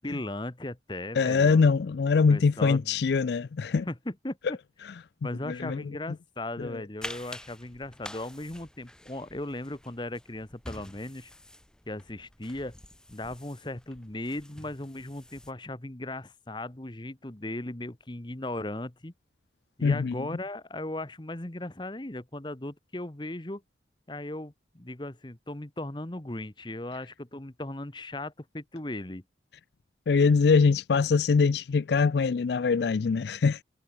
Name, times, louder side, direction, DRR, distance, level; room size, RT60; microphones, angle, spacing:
voice 1, 0.0-1.6 2.3-3.0 3.9-4.4 5.2-11.3 11.9-12.8 13.1-19.1 19.8-23.6 24.1-29.2, left 1 dB, 25° left, 1.2 m, -37 dB
voice 2, 1.1-3.9 5.5-5.9 6.6-6.8 19.8-20.1 30.1-33.6, left 5 dB, 65° left, 0.4 m, -23 dB
sound 1, 7.0-15.5, left 1 dB, 5° left, 0.7 m, -47 dB
head